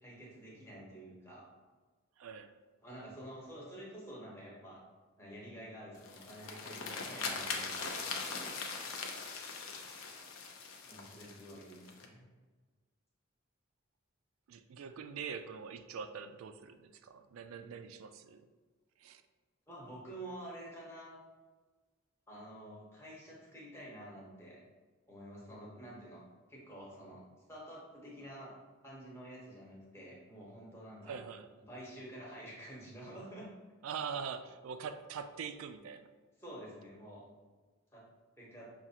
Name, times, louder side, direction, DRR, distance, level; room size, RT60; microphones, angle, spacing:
voice 1, 0.0-1.4 2.8-4.8 5.2-8.5 10.9-12.3 19.7-21.2 22.3-24.6 25.1-26.2 26.5-27.2 27.5-28.5 28.8-31.2 31.7-33.5 36.4-37.2 37.9-38.1 38.4-38.7, right 1 dB, 10° left, -5 dB, 0.9 m, -49 dB
voice 2, 2.2-2.5 14.5-18.4 19.0-19.2 31.0-31.5 33.8-36.1, right 6 dB, 75° right, 10 dB, 0.3 m, -43 dB
sound 1, 6.0-12.1, left 4 dB, 75° left, 0.5 m, -41 dB
5.9 x 2.3 x 2.8 m, 1.3 s
head